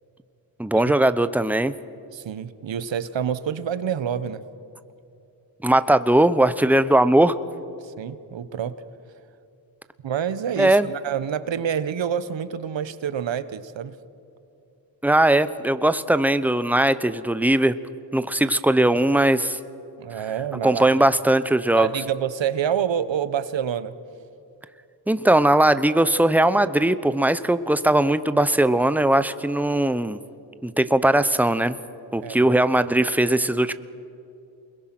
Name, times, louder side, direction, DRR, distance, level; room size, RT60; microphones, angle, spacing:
voice 1, 0.6-1.7 5.6-7.3 10.6-10.9 15.0-17.7 18.1-19.6 20.6-21.9 25.1-30.2 30.6-31.8 32.1-33.7, right 1 dB, 5° right, 12 dB, 0.9 m, -19 dB
voice 2, 2.1-4.4 7.8-8.8 10.0-13.9 20.0-20.9 21.8-23.9 32.2-32.5, right 8 dB, 70° right, 13 dB, 1.2 m, -27 dB
28.5 x 21.5 x 6.1 m, 2.6 s
cardioid pair, 65°, 46 cm